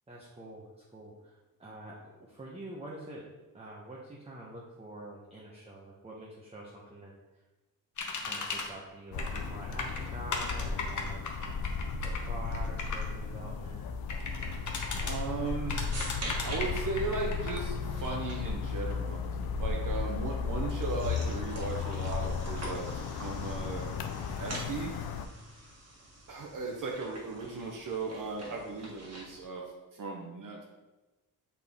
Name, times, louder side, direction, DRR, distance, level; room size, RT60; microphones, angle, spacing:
voice 1, 0.1-1.9 2.2-3.2 3.5-7.1 8.2-11.2 12.0-13.8, right 1 dB, 15° right, -4 dB, 0.9 m, -46 dB
sound 1, 8.0-8.7 9.2-9.5 9.8-13.0 14.1-15.1 15.7-17.6, left 4 dB, 55° left, 1.0 m, -36 dB
sound 2, 9.1-25.3, left 5 dB, 75° left, 0.6 m, -35 dB
voice 2, 15.0-15.8 16.4-19.2 19.6-23.9 24.4-24.9 26.3-29.6 29.9-30.6, right 3 dB, 60° right, -1 dB, 0.9 m, -37 dB
sound 3, 15.4-29.4, right 1 dB, 45° right, 1.6 m, -46 dB
7.5 x 4.3 x 3.6 m, 1.1 s
wide cardioid pair, 135°, 37 cm